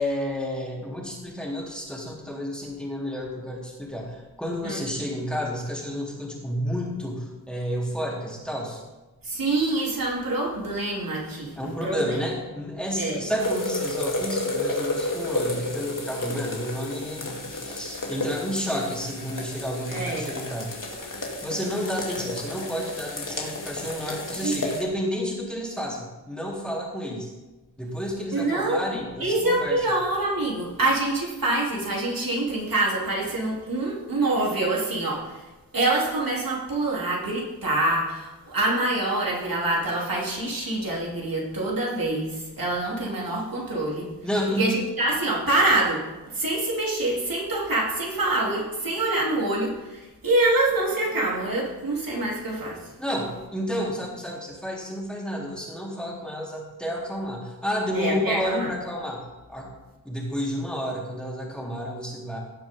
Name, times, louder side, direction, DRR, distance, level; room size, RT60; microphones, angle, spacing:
voice 1, 0.0-8.8 11.6-20.7 21.4-27.3 27.8-29.8 44.2-44.7 53.0-59.2 59.5-59.7 60.0-62.4, equal, ahead, -4 dB, 3.7 m, -30 dB
voice 2, 9.2-12.2 12.9-13.2 19.9-20.3 24.4-24.5 28.3-28.8 29.2-44.1 44.5-52.9 57.9-58.7, right 2 dB, 60° right, -3 dB, 3.5 m, -26 dB
sound 1, 13.4-24.8, left 2 dB, 55° left, 2.6 m, -31 dB
18.0 x 7.0 x 3.8 m, 1.1 s
cardioid pair, 65°, 39 cm